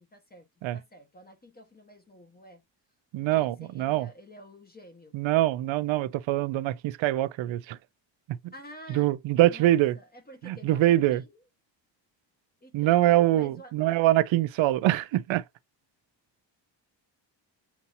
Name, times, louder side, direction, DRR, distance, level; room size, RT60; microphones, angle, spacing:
voice 1, 0.0-0.5 0.7-2.6 3.2-5.2 8.5-9.1 9.5-11.4 12.6-13.0 13.3-13.7, equal, 20° left, 1.2 m, -50 dB
voice 2, 3.1-4.1 5.1-7.8 8.4-8.5 8.9-10.0 10.4-11.2 12.7-15.4, right 15 dB, 80° right, 0.6 m, -24 dB
7.1 x 2.8 x 2.6 m
cardioid pair, 140°, 45 cm